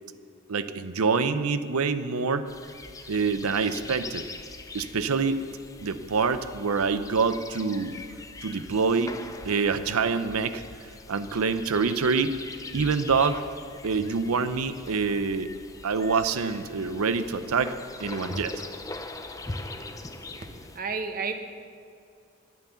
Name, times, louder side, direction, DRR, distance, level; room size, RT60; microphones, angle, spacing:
voice 1, 0.5-2.5 3.1-4.2 4.7-5.4 5.8-7.9 8.4-9.2 9.4-10.6 11.1-12.3 12.7-13.4 13.8-15.5 15.8-18.5, right 5 dB, 90° right, 12 dB, 0.6 m, -26 dB
sound 1, 2.5-20.8, left 2 dB, 15° left, 0.6 m, -42 dB
voice 2, 20.7-21.3, right 4 dB, 40° right, 6 dB, 1.0 m, -30 dB
11.5 x 9.4 x 6.9 m, 2.4 s
head